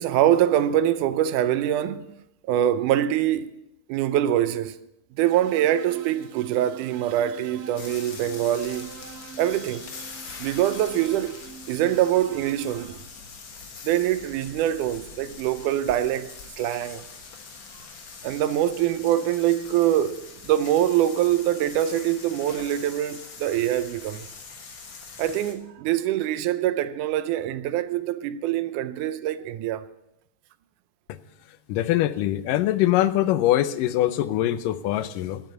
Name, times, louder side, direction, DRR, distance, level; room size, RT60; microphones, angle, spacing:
voice 1, 0.0-2.1 2.5-3.5 3.9-4.8 5.2-8.9 9.4-9.9 10.4-11.4 11.7-13.0 13.8-16.3 16.6-17.0 18.2-24.3 25.2-29.9, right 12 dB, 80° right, 2.0 m, -24 dB
sound 1, 5.2-12.8, right 5 dB, 60° right, 2.3 m, -45 dB
sound 2, 7.8-25.5, left 5 dB, 50° left, 1.7 m, -43 dB
voice 2, 31.7-35.4, left 13 dB, 85° left, 2.3 m, -23 dB
12.0 x 8.1 x 9.0 m
omnidirectional pair, 3.7 m